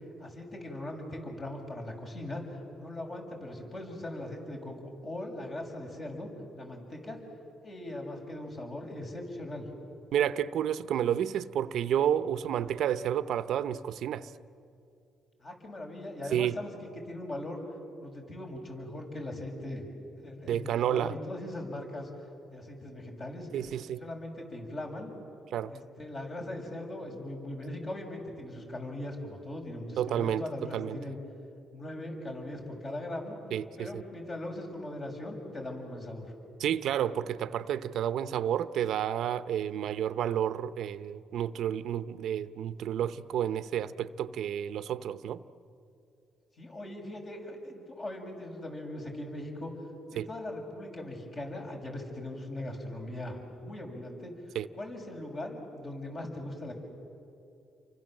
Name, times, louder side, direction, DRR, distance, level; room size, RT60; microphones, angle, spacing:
voice 1, 0.2-7.2 7.6-9.7 15.4-17.6 18.0-19.9 20.2-22.1 22.5-23.5 24.0-25.1 25.7-31.2 31.7-33.4 33.8-36.3 46.6-49.7 50.1-54.3 54.8-56.7, left 1 dB, 40° left, 2 dB, 6.6 m, -40 dB
voice 2, 10.1-14.3 16.3-16.6 20.5-21.1 23.5-24.0 25.5-25.7 30.0-30.4 30.7-31.0 33.5-34.0 36.6-45.4 50.2-50.3 54.5-54.7, right 10 dB, 75° right, 14 dB, 0.7 m, -30 dB
29.5 x 24.5 x 7.7 m, 2.6 s
cardioid pair, 90°, 0 cm